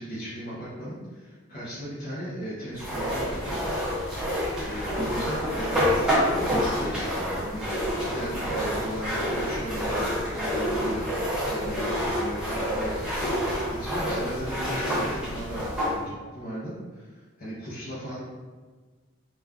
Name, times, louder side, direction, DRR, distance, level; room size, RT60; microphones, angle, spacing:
voice 1, 0.0-3.6 4.6-11.1 11.4-18.2, equal, 40° left, -9 dB, 0.6 m, -37 dB
sound 1, 2.8-16.0, equal, 5° right, 0.6 m, -28 dB
2.3 x 2.2 x 3.4 m, 1.4 s
head